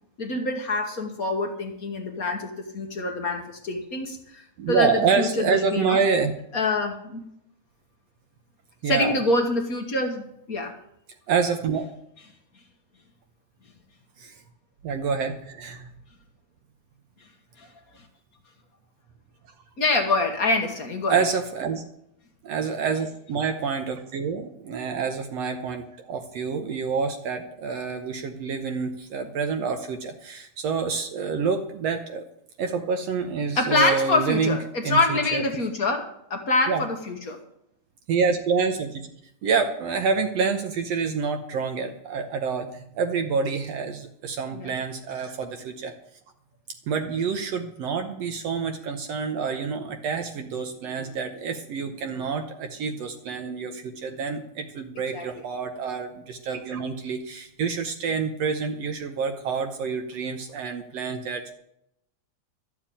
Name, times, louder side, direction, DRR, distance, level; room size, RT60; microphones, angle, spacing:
voice 1, 0.2-6.0 6.5-7.3 8.9-10.7 17.6-17.7 19.8-21.2 33.5-37.4 44.5-44.7 55.1-55.3, left 2 dB, 50° left, 4 dB, 1.0 m, -25 dB
voice 2, 4.6-6.3 8.8-9.2 11.3-11.9 14.2-14.4 14.8-15.9 21.1-21.8 22.4-32.3 32.6-34.6 34.8-35.4 36.7-36.8 38.1-39.1 39.4-45.9 46.9-61.5, right 5 dB, 65° right, 6 dB, 1.8 m, -27 dB
13.0 x 7.4 x 8.5 m, 0.76 s
omnidirectional pair, 3.5 m